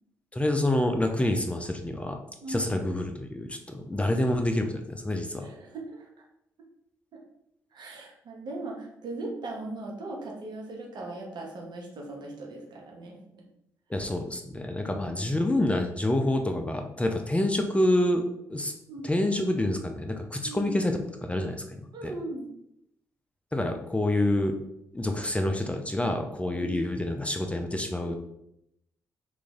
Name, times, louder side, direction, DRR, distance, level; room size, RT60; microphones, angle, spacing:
voice 1, 0.3-2.2 2.5-5.5 13.9-18.2 18.5-18.7 19.0-22.1 23.5-24.5 24.9-28.2, left 1 dB, 15° left, 4 dB, 0.5 m, -27 dB
voice 2, 2.4-2.7 5.4-6.1 7.1-7.2 7.7-13.4 14.9-15.3 18.9-19.1 20.4-20.7 21.9-22.4 26.5-26.8, right 2 dB, 60° right, -1 dB, 1.0 m, -39 dB
3.1 x 2.6 x 3.5 m, 0.79 s
hypercardioid pair, 40°, 9 cm